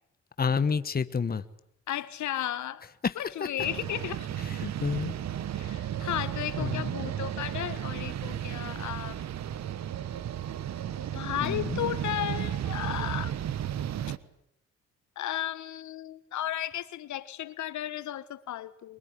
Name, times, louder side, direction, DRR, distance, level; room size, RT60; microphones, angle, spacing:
voice 1, 0.4-1.4 3.0-3.5 4.4-5.1 6.0-6.1 6.6-6.9 11.4-11.8, left 5 dB, 30° left, 1.3 m, -30 dB
voice 2, 1.9-2.9 3.2-4.3 5.5-9.2 11.1-13.3 15.2-19.0, left 12 dB, 70° left, 1.5 m, -34 dB
sound 1, 3.6-14.2, right 10 dB, 60° right, 1.3 m, -34 dB
24.0 x 23.0 x 10.0 m
cardioid pair, 90°, 30 cm